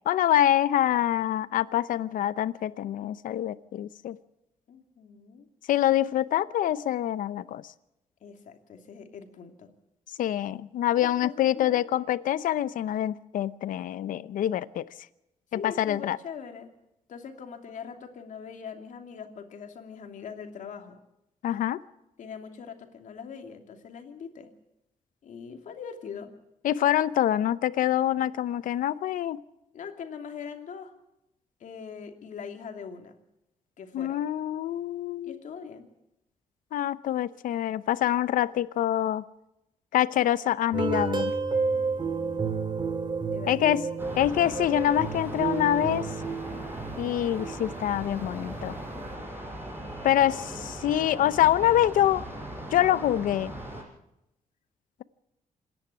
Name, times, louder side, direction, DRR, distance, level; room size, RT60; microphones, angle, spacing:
voice 1, 0.1-4.2 5.7-7.6 10.2-14.8 15.5-16.2 21.4-21.8 26.6-29.4 33.9-35.4 36.7-39.2 39.9-41.3 43.5-43.8 44.2-46.1 47.0-48.7 50.0-52.2 52.7-53.5, left 12 dB, 85° left, 0.7 m, -25 dB
voice 2, 4.7-5.5 8.2-9.7 11.0-11.9 15.5-16.7 17.1-21.0 22.2-24.5 25.2-26.3 29.7-30.9 31.6-33.1 33.8-34.2 35.2-35.9 41.7-42.5 43.3-43.6, left 6 dB, 70° left, 2.7 m, -42 dB
sound 1, 40.7-48.9, right 4 dB, 35° right, 2.3 m, -31 dB
sound 2, 44.0-53.8, right 1 dB, 15° right, 6.6 m, -39 dB
26.5 x 10.5 x 9.8 m
cardioid pair, 100°, 14 cm